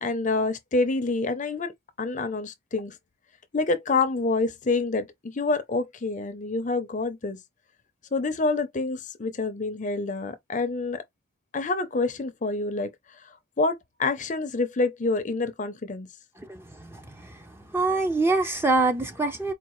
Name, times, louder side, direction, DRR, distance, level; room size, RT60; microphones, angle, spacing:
voice 1, 0.0-1.7 2.0-3.0 3.5-7.4 8.1-11.0 11.5-12.9 13.3-16.1, left 3 dB, 35° left, 0.6 m, -27 dB
voice 2, 16.4-17.3 17.7-19.5, right 3 dB, 10° right, 0.5 m, -25 dB
4.6 x 2.4 x 3.0 m
head